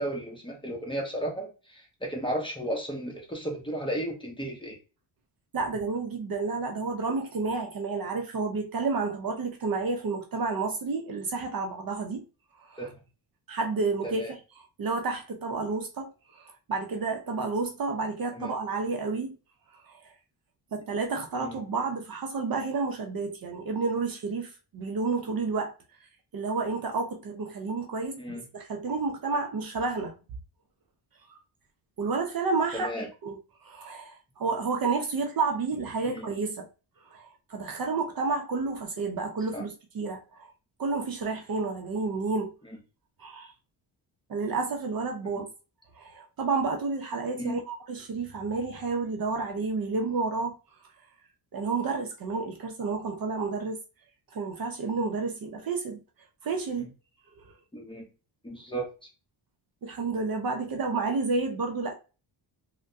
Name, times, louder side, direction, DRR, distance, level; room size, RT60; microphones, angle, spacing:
voice 1, 0.0-4.8 12.8-12.9 14.0-14.3 18.4-18.5 21.3-21.6 28.2-28.4 32.7-33.1 36.0-36.3 39.5-39.6 47.4-47.6 56.8-56.9 57.7-58.1 58.4-58.9, right 1 dB, 10° left, 0.9 m, -34 dB
voice 2, 5.5-12.2 12.7-12.8 13.5-19.4 19.9-20.1 20.7-25.7 26.3-28.2 28.5-30.2 31.3-31.4 32.0-36.7 37.1-40.5 40.8-42.5 43.2-43.5 44.3-45.5 45.9-50.6 51.5-53.8 54.3-56.0 56.4-56.9 57.4-57.5 59.8-61.9, right 4 dB, 45° right, 0.6 m, -30 dB
3.3 x 2.2 x 2.6 m
cardioid pair, 115°, 48 cm